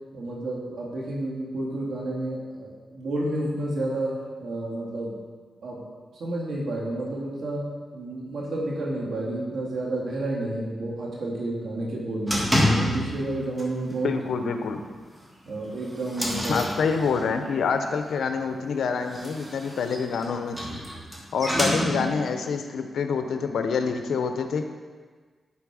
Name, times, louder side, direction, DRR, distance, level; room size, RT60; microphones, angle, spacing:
voice 1, 0.1-5.2 5.6-5.8 6.2-7.7 7.9-14.1 14.4-14.5 15.5-16.6, right 1 dB, 80° right, -3 dB, 2.0 m, -30 dB
sound 1, 12.3-13.3 13.6-13.9 14.3-14.4 14.8-14.9 15.5-17.5 18.9-22.3, equal, 15° right, 1.7 m, -28 dB
voice 2, 14.0-14.8 16.5-20.8 21.3-24.7, left 5 dB, 85° left, 7 dB, 0.6 m, -27 dB
10.5 x 4.3 x 4.8 m, 1.5 s
cardioid pair, 95°, 0 cm